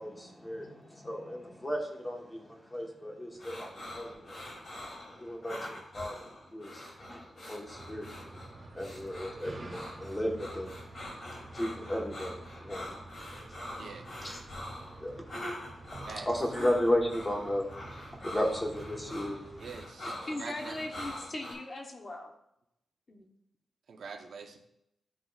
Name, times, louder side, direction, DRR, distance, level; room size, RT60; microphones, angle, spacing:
voice 1, 0.0-4.5 5.0-6.2 6.5-8.4 8.7-13.0 13.5-13.6 14.2-14.4 14.9-15.7 16.3-19.6, left 1 dB, 15° left, 0 dB, 1.1 m, -35 dB
sound 1, 3.4-21.5, left 1 dB, 55° left, 2.5 m, -44 dB
sound 2, 7.7-19.9, right 2 dB, 45° right, 2.0 m, -49 dB
voice 2, 19.6-21.0 23.9-24.6, right 5 dB, 70° right, 4 dB, 0.8 m, -44 dB
voice 3, 20.3-22.3 23.1-23.3, left 2 dB, 35° left, 2 dB, 0.8 m, -39 dB
11.5 x 4.0 x 2.3 m, 0.81 s
wide cardioid pair, 140°, 0 cm